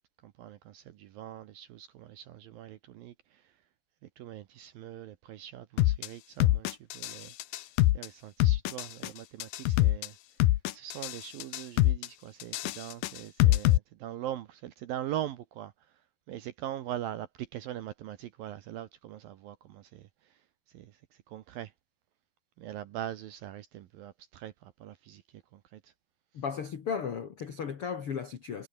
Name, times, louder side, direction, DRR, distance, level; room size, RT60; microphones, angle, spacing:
voice 1, 0.2-3.1 4.2-6.7 6.9-7.3 7.9-10.2 10.7-15.7 16.3-20.1 20.7-20.9 21.3-21.7 22.6-25.2 25.7-25.8, right 12 dB, 75° right, 2.2 m, -41 dB
sound 1, 5.8-6.1 6.4-7.1 7.4-8.1 8.4-9.1 9.4-10.1 10.4-11.1 11.4-12.1 12.4-13.8, left 16 dB, 80° left, 2.1 m, -24 dB
voice 2, 26.3-28.7, left 6 dB, 60° left, 1.5 m, -35 dB
omnidirectional pair, 5.3 m